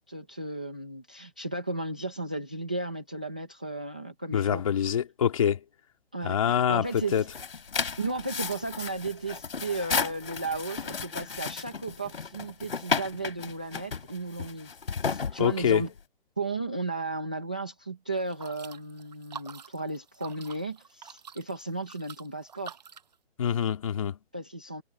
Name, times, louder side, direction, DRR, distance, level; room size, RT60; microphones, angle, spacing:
voice 1, 0.1-4.6 6.1-7.2 8.0-15.9 16.4-22.8 24.3-24.8, right 2 dB, 10° right, 0.6 m, -35 dB
voice 2, 4.3-5.6 6.2-7.2 15.4-15.9 23.4-24.2, left 8 dB, 30° left, 3.0 m, -25 dB
sound 1, 6.9-16.0, left 5 dB, 65° left, 2.8 m, -33 dB
sound 2, 18.1-23.1, right 7 dB, 40° right, 7.2 m, -47 dB
hypercardioid pair, 175°, 32 cm